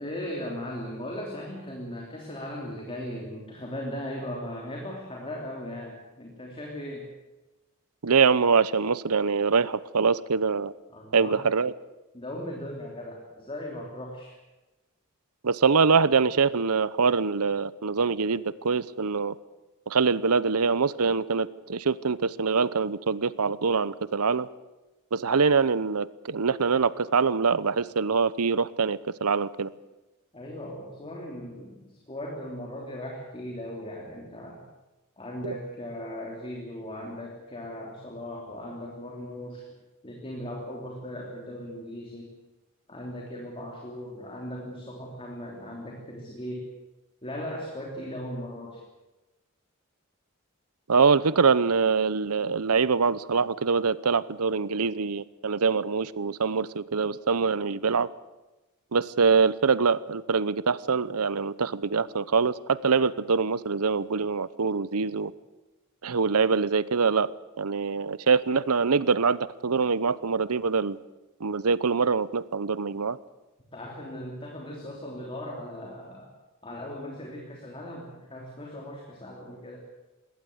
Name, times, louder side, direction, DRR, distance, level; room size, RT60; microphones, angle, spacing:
voice 1, 0.0-7.1 10.9-11.5 12.1-14.3 30.3-34.6 35.2-39.7 40.0-42.3 42.9-46.7 47.2-48.8 73.7-76.3 76.6-79.8, left 1 dB, 25° left, 0 dB, 3.2 m, -38 dB
voice 2, 8.0-10.7 11.1-11.7 15.4-19.3 19.9-24.5 25.1-29.7 35.4-35.6 50.9-58.1 58.9-65.3 66.0-67.3 67.6-71.0 71.4-73.2, right 5 dB, 90° right, 18 dB, 0.8 m, -24 dB
21.5 x 17.5 x 8.1 m, 1.1 s
head